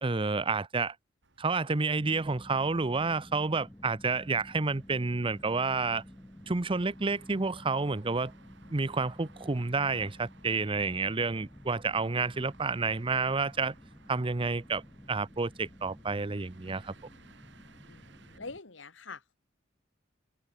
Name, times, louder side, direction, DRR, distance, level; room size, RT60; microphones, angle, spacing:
voice 1, 0.0-0.9 1.4-6.0 6.5-8.3 8.7-13.7 14.1-14.8 15.1-16.9, right 4 dB, 30° right, 0.7 m, -30 dB
sound 1, 1.2-18.4, right 3 dB, 70° right, 3.3 m, -61 dB
sound 2, 2.0-18.6, equal, 10° left, 1.1 m, -52 dB
voice 2, 17.9-19.4, left 3 dB, 80° left, 2.5 m, -45 dB
head